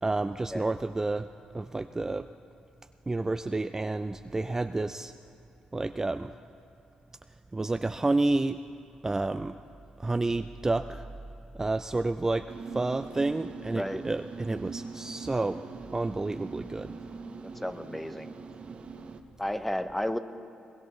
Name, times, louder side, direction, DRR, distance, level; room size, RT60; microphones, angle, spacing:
voice 1, 0.0-1.3 1.5-2.3 3.1-5.1 5.7-6.3 7.5-8.6 9.0-9.6 10.0-11.0 11.6-15.6 15.9-17.0, right 2 dB, 20° right, 9 dB, 0.4 m, -30 dB
sound 1, 12.5-19.2, right 4 dB, 55° right, 1.0 m, -42 dB
voice 2, 13.7-14.0 17.4-18.3 19.4-20.2, left 1 dB, 5° left, 10 dB, 0.9 m, -33 dB
22.5 x 20.0 x 3.2 m, 2.7 s
cardioid pair, 70°, 2 cm